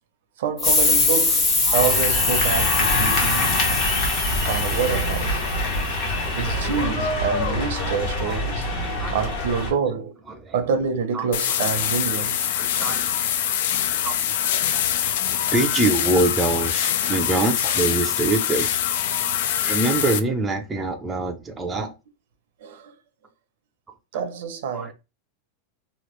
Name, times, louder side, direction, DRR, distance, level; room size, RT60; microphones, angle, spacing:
voice 1, 0.4-3.7 4.4-5.4 6.4-8.7 9.1-10.2 10.5-12.5 13.9-14.1 15.0-15.1 19.3-19.4 21.8-21.9 22.6-22.9 24.1-24.9, right 6 dB, 75° right, 0.7 m, -27 dB
sound 1, 0.6-5.9, left 3 dB, 30° left, 0.9 m, -22 dB
sound 2, 1.7-9.7, left 2 dB, 50° left, 1.1 m, -25 dB
voice 2, 6.1-6.5 7.7-8.4 8.8-9.2 10.3-10.6 11.1-11.3 12.6-13.5 14.0-14.7 15.3-18.9 19.6-21.9 24.1-24.2 24.7-24.9, right 2 dB, 15° right, 0.4 m, -26 dB
sound 3, 11.3-20.2, left 10 dB, 70° left, 0.4 m, -24 dB
2.9 x 2.4 x 3.1 m
supercardioid pair, 155°, 0 cm